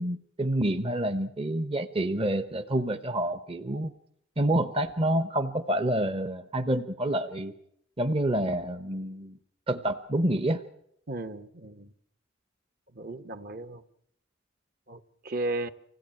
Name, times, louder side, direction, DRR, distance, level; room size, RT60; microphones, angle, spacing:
voice 1, 0.0-3.9 4.4-7.5 8.0-9.4 9.7-10.6, right 1 dB, 30° right, 0.9 m, -28 dB
voice 2, 11.1-11.9 12.9-13.8 14.9-15.7, right 2 dB, 50° right, 1.2 m, -35 dB
25.5 x 17.0 x 8.9 m
head